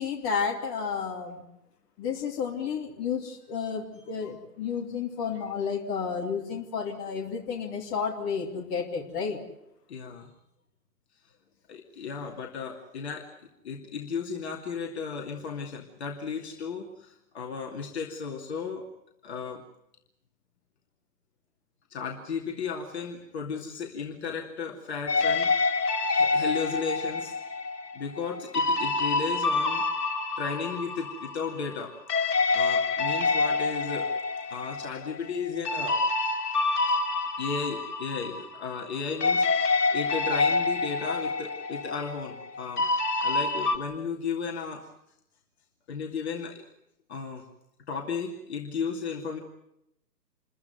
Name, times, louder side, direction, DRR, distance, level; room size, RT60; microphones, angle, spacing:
voice 1, 0.0-1.4 2.0-9.4, left 6 dB, 20° left, 0 dB, 2.6 m, -31 dB
voice 2, 9.9-10.3 11.7-13.3 13.6-18.8 19.2-19.6 21.9-25.8 26.1-27.4 27.9-29.9 30.4-31.9 32.5-34.1 34.5-36.0 37.4-39.4 39.9-42.9 43.2-44.9 45.9-46.6 47.1-47.4 47.9-49.4, left 5 dB, 40° left, 1 dB, 2.7 m, -34 dB
sound 1, 25.1-38.9 39.2-43.8, left 3 dB, 65° left, 3.1 m, -27 dB
28.0 x 14.5 x 9.3 m, 0.83 s
hypercardioid pair, 150°, 49 cm